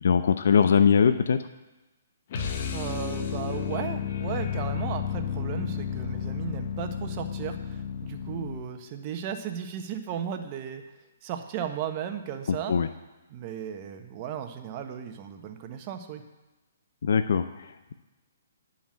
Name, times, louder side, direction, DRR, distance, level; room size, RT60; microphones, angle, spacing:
voice 1, 0.0-1.4 12.7-12.9 17.0-17.9, left 6 dB, 65° left, 10 dB, 0.6 m, -21 dB
sound 1, 2.3-8.8, left 7 dB, 50° left, 1.2 m, -32 dB
voice 2, 2.7-10.8 11.2-12.7 13.3-16.2, right 8 dB, 35° right, 6 dB, 1.3 m, -35 dB
10.5 x 5.9 x 8.5 m, 1.1 s
figure-of-eight pair, 130°, 0 cm